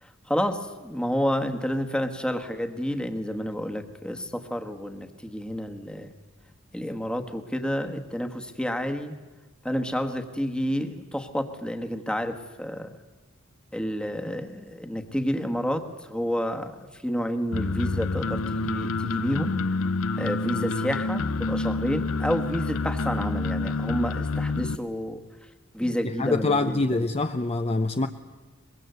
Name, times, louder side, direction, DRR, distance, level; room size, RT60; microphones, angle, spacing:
voice 1, 0.0-6.1 6.7-9.1 9.6-12.9 13.7-19.5 20.2-25.2 25.7-27.1, equal, 5° left, 6 dB, 1.4 m, -30 dB
sound 1, 17.5-24.7, left 3 dB, 75° left, 0.7 m, -28 dB
voice 2, 26.2-28.1, left 2 dB, 30° left, 8 dB, 0.6 m, -25 dB
23.5 x 21.5 x 8.0 m, 1.3 s
head